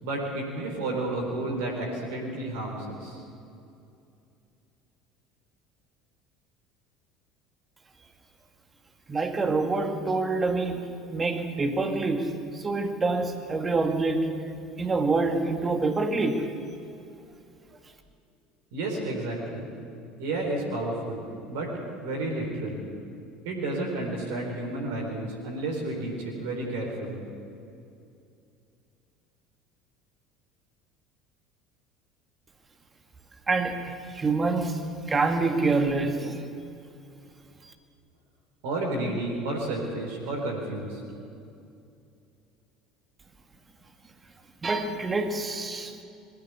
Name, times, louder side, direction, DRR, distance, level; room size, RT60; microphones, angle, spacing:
voice 1, 0.0-3.2 18.7-19.6 20.2-21.7 22.0-22.9 23.4-27.2 38.6-41.0, right 2 dB, 65° right, 0 dB, 4.2 m, -31 dB
voice 2, 9.1-14.3 14.8-16.5 33.5-34.8 35.1-36.4 44.6-45.9, right 3 dB, 25° right, 6 dB, 2.2 m, -26 dB
21.0 x 15.5 x 8.2 m, 2.6 s
figure-of-eight pair, 65°, 0 cm